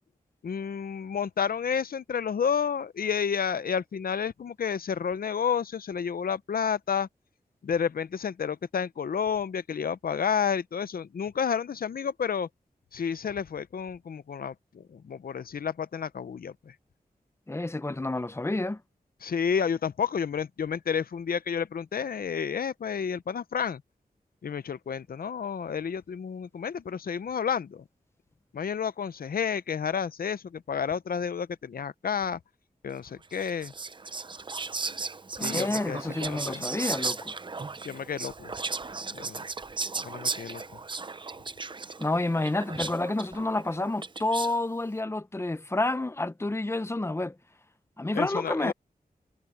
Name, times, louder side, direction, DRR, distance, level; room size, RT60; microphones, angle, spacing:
voice 1, 0.4-7.1 7.6-12.5 12.9-16.5 19.2-23.8 24.4-27.8 28.5-32.4 32.8-33.7 35.4-36.7 37.8-38.5 39.1-39.4 40.0-40.6 48.1-48.7, left 7 dB, 70° left, 0.7 m, -30 dB
voice 2, 17.5-18.8 35.4-37.3 42.0-47.3 48.0-48.7, left 2 dB, 15° left, 0.7 m, -29 dB
Whispering, 33.3-44.6, right 4 dB, 30° right, 0.5 m, -36 dB
wide cardioid pair, 125°, 16 cm